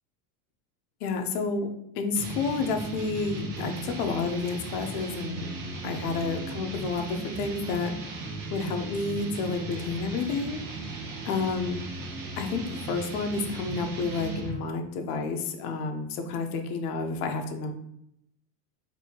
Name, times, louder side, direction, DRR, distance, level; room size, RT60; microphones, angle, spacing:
voice 1, 1.0-1.7 2.0-5.5 5.8-7.9 8.5-10.6 11.2-11.8 12.4-17.7, left 4 dB, 65° left, 5 dB, 0.7 m, -30 dB
sound 1, 2.2-14.7, right 2 dB, 45° right, 0.7 m, -37 dB
4.2 x 2.7 x 2.8 m, 0.76 s
supercardioid pair, 160°, 47 cm